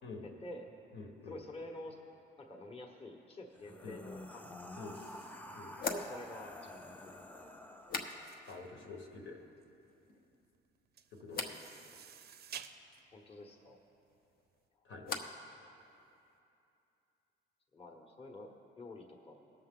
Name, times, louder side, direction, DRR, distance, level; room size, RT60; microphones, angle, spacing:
voice 1, 0.2-0.6 1.3-2.0 2.4-4.5 5.9-7.2 12.5-12.6 13.1-13.8 17.7-18.5 18.8-19.5, left 2 dB, 30° left, 0 dB, 1.1 m, -48 dB
voice 2, 0.9-1.4 3.8-4.0 4.8-5.0 5.5-5.7 8.5-9.4 11.1-11.8 14.8-15.1, left 3 dB, 75° left, 1 dB, 1.5 m, -48 dB
sound 1, 3.5-8.8, left 1 dB, 10° left, 0.6 m, -50 dB
sound 2, 4.9-14.6, right 8 dB, 55° right, 0.5 m, -54 dB
sound 3, 5.8-8.6 8.9-9.5 9.8-10.4 11.3-11.6 14.1-15.5 15.8-16.4, left 4 dB, 50° left, 0.9 m, -44 dB
18.0 x 6.6 x 3.8 m, 2.7 s
cardioid pair, 90°, 20 cm